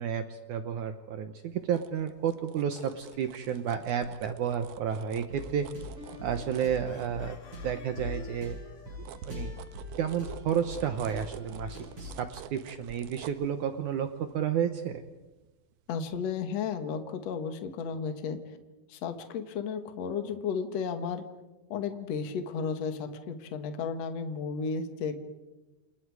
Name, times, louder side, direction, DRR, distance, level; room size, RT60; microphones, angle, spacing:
voice 1, 0.0-5.7 6.2-7.4 7.6-8.6 9.0-9.5 10.0-15.0, right 8 dB, 65° right, 8 dB, 2.2 m, -31 dB
sound 1, 1.5-7.8 8.2-15.7 16.1-16.2, right 11 dB, 85° right, 2.8 m, -50 dB
Chicken rooster, 2.2-3.4 6.8-9.0, left 8 dB, 75° left, 3.6 m, -55 dB
sound 2, 5.3-12.3, left 2 dB, 35° right, 8.5 m, -42 dB
voice 2, 15.9-18.4 18.9-21.2 21.7-25.2, left 6 dB, 55° left, 7 dB, 2.4 m, -33 dB
29.0 x 28.0 x 4.8 m, 1.1 s
omnidirectional pair, 4.2 m